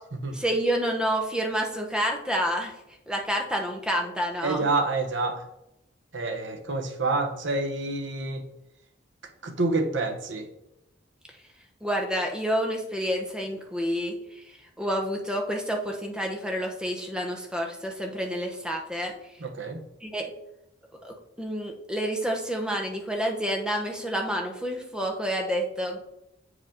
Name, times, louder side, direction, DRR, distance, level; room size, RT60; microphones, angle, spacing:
voice 1, 0.3-2.7 3.1-4.6 11.8-14.4 14.8-19.1 20.0-20.3 21.0-26.0, equal, 5° right, 2 dB, 0.9 m, -29 dB
voice 2, 4.4-5.4 6.1-8.4 9.4-10.5 19.4-19.8, right 3 dB, 75° right, 4 dB, 1.0 m, -28 dB
7.7 x 4.8 x 3.7 m, 0.84 s
head